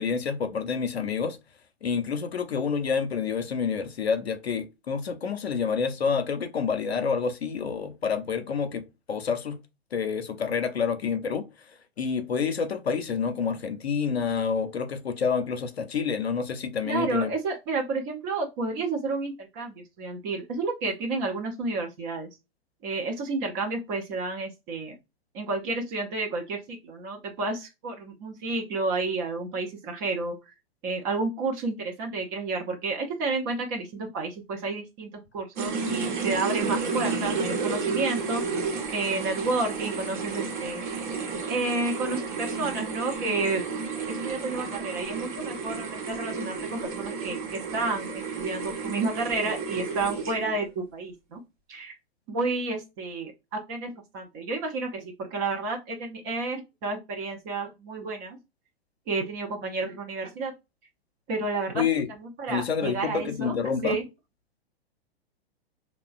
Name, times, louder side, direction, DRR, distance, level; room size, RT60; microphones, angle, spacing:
voice 1, 0.0-1.4 1.8-9.6 9.9-11.5 12.0-17.3 61.7-62.1 62.5-64.0, left 6 dB, 75° left, 0.6 m, -28 dB
voice 2, 16.8-22.3 22.8-25.0 25.3-30.5 30.8-38.4 38.9-40.8 41.5-43.6 44.1-51.4 51.7-51.9 52.3-58.4 59.1-60.5 61.3-61.8 62.2-63.5 63.8-64.1, right 3 dB, 20° right, 0.3 m, -31 dB
sound 1, 35.6-50.6, right 4 dB, 50° right, 0.9 m, -32 dB
2.9 x 2.1 x 2.3 m
figure-of-eight pair, 105°, 32 cm